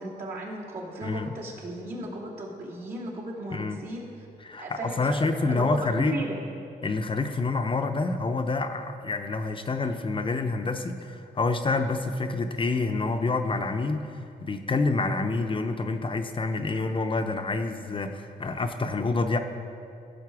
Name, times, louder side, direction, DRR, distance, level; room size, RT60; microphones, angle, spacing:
voice 1, 0.0-4.1 4.6-6.4, right 1 dB, 65° right, -6 dB, 2.8 m, -36 dB
voice 2, 3.5-3.8 4.4-6.2 6.8-14.0 14.4-19.4, left 3 dB, 30° left, 6 dB, 0.6 m, -27 dB
15.5 x 6.6 x 4.7 m, 2.6 s
cardioid pair, 95°, 16 cm